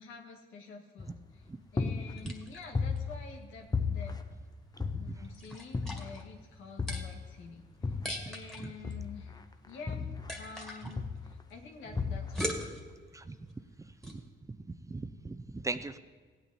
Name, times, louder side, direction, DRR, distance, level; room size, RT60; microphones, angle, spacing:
voice 1, 0.0-1.4 1.7-4.2 4.9-7.9 8.3-10.1 10.3-12.6, left 4 dB, 90° left, 1 dB, 1.8 m, -48 dB
sound 1, 1.0-1.4 1.8-3.4 3.7-5.3 5.7-6.3 6.8-8.3 8.8-10.6 11.0-11.4 11.9-12.6, left 4 dB, 20° left, 0.7 m, -35 dB
sound 2, 1.4-14.3, equal, ahead, 2.0 m, -44 dB
voice 2, 14.5-16.0, right 3 dB, 15° right, 10 dB, 0.6 m, -39 dB
16.0 x 9.0 x 4.2 m, 1.5 s
cardioid pair, 90°, 20 cm